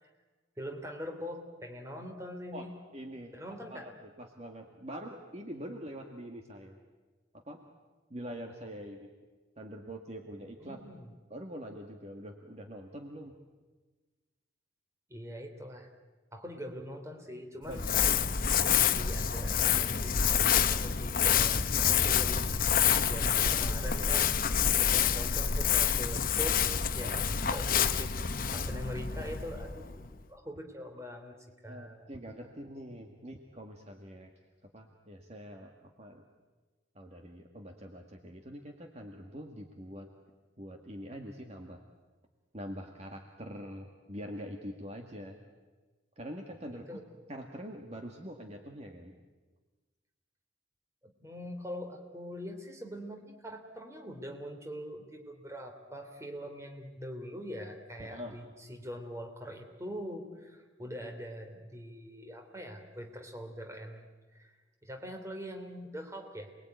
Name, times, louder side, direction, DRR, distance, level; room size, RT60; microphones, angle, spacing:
voice 1, 0.6-2.7 3.3-3.9 10.6-11.1 15.1-15.9 16.3-17.9 18.5-22.4 23.1-26.6 26.9-28.2 28.5-31.4 31.6-32.1 46.7-47.0 51.0-64.5 64.8-66.6, equal, 15° right, 3 dB, 3.1 m, -43 dB
voice 2, 2.5-6.8 7.3-7.6 8.1-9.1 9.6-10.8 11.3-13.3 17.7-17.9 27.0-27.3 31.7-34.3 34.7-35.7 36.0-36.2 37.0-40.1 40.6-41.8 42.5-45.4 46.2-47.0 47.3-49.2 58.0-58.4, equal, 35° right, 2 dB, 1.9 m, -44 dB
Crumpling crinkling, 17.7-30.1, left 7 dB, 45° left, 0.9 m, -27 dB
28.5 x 21.5 x 9.4 m, 1.3 s
head